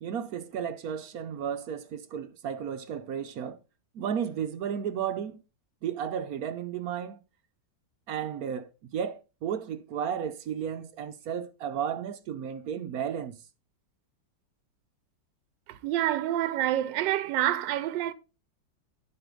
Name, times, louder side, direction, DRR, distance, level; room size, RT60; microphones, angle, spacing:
voice 1, 0.0-3.6 4.0-5.4 5.8-7.2 8.1-13.4, right 8 dB, 65° right, 1.0 m, -33 dB
voice 2, 15.7-18.1, right 13 dB, 80° right, 1.3 m, -27 dB
11.0 x 5.1 x 3.7 m
omnidirectional pair, 2.0 m